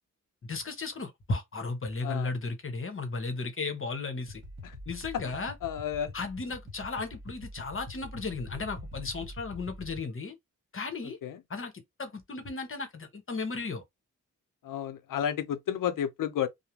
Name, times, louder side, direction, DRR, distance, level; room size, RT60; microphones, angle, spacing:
voice 1, 0.5-4.4 4.9-5.5 6.1-10.3 10.7-11.2 11.5-11.7 12.0-13.8, left 3 dB, 40° left, 0.9 m, -35 dB
sound 1, 4.3-10.0, left 1 dB, 40° right, 1.2 m, -44 dB
voice 2, 5.6-6.1 11.2-11.4 14.6-16.5, left 9 dB, 85° left, 0.5 m, -31 dB
2.4 x 2.1 x 2.9 m
cardioid pair, 70°, 31 cm